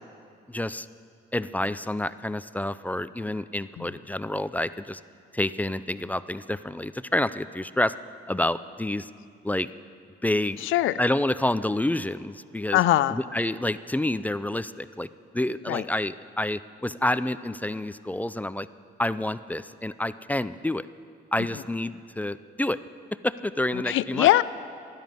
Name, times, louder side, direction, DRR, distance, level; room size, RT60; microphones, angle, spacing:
voice 1, 0.5-0.9 1.3-5.0 5.3-7.9 8.3-9.1 9.4-9.7 10.2-10.7 11.0-12.8 13.1-15.1 15.3-18.7 19.0-20.9 21.3-22.8 23.2-24.3, left 1 dB, 10° left, 14 dB, 0.4 m, -28 dB
voice 2, 10.6-11.0 12.7-13.2 15.7-15.9 23.7-24.4, left 15 dB, 80° left, 16 dB, 0.5 m, -22 dB
13.5 x 11.5 x 9.2 m, 2.3 s
cardioid pair, 90°, 20 cm